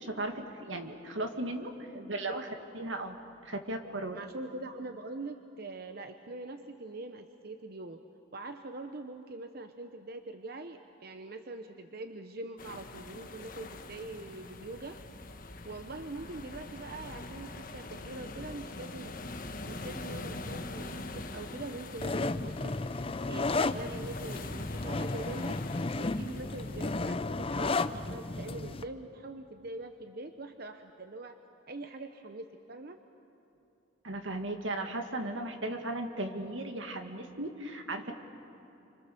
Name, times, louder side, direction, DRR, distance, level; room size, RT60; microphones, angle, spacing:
voice 1, 0.0-1.7 2.1-2.5 2.7-3.2 3.4-4.2 34.0-38.1, right 2 dB, 85° right, 5 dB, 2.2 m, -36 dB
voice 2, 1.9-2.4 4.1-8.0 8.3-15.0 15.6-19.1 19.6-22.7 23.2-25.6 26.0-31.4 31.7-33.0, right 2 dB, 55° right, 7 dB, 0.9 m, -43 dB
sound 1, 12.6-27.1, left 2 dB, 45° left, 1.4 m, -44 dB
sound 2, 22.0-28.8, left 3 dB, 30° left, 0.6 m, -33 dB
29.5 x 26.0 x 6.9 m, 2.9 s
head